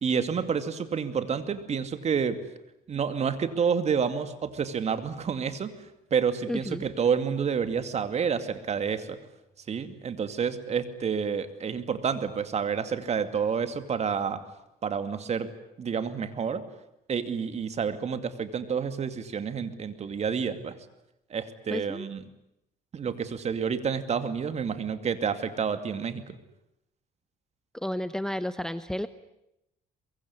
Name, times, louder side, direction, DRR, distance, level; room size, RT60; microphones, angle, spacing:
voice 1, 0.0-2.4 2.9-5.7 6.1-9.2 9.7-14.4 14.8-15.5 15.8-16.6 17.1-20.8 21.3-22.2 22.9-26.4, right 6 dB, 40° right, 10 dB, 2.4 m, -29 dB
voice 2, 6.5-6.8 21.7-22.1 27.7-29.1, left 1 dB, 5° left, 12 dB, 0.9 m, -32 dB
23.5 x 22.5 x 9.8 m, 0.85 s
cardioid pair, 110°, 17 cm